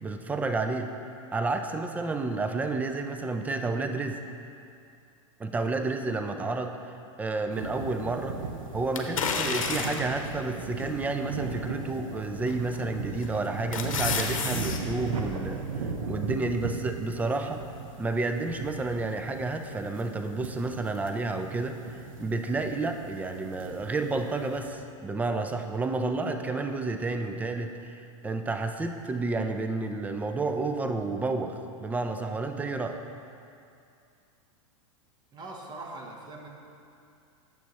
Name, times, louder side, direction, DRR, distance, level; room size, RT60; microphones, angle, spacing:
voice 1, 0.0-0.9 1.3-4.2 5.4-6.8 7.2-8.4 8.7-15.6 16.1-17.6 18.0-33.0, right 3 dB, 10° right, 6 dB, 0.4 m, -30 dB
sound 1, 7.5-24.7, right 4 dB, 85° right, 0.8 m, -37 dB
sound 2, 8.9-10.2 10.8-10.9 12.5-12.8 13.2-14.8 15.1-15.2, left 5 dB, 85° left, 0.8 m, -30 dB
voice 2, 35.3-36.5, right 2 dB, 25° right, 1 dB, 1.0 m, -41 dB
9.0 x 6.9 x 3.0 m, 2.5 s
hypercardioid pair, 120°, 17 cm